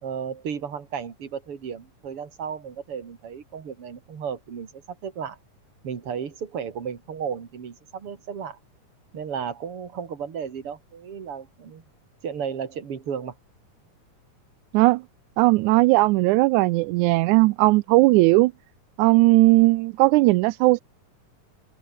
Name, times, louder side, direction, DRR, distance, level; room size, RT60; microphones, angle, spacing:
voice 1, 0.0-5.4 5.8-8.6 9.1-11.8 12.2-13.3, right 7 dB, 45° right, 3.2 m, -34 dB
voice 2, 15.4-18.5 19.0-20.8, right 21 dB, 80° right, 1.8 m, -18 dB
open air
omnidirectional pair, 3.8 m